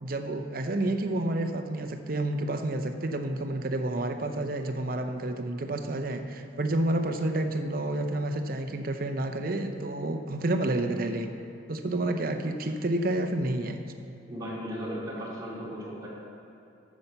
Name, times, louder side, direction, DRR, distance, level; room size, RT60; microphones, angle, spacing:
voice 1, 0.0-11.3 11.7-13.8, right 1 dB, 50° right, 6 dB, 0.7 m, -29 dB
voice 2, 14.3-16.1, equal, 20° right, -6 dB, 2.4 m, -36 dB
8.5 x 7.2 x 6.7 m, 2.8 s
head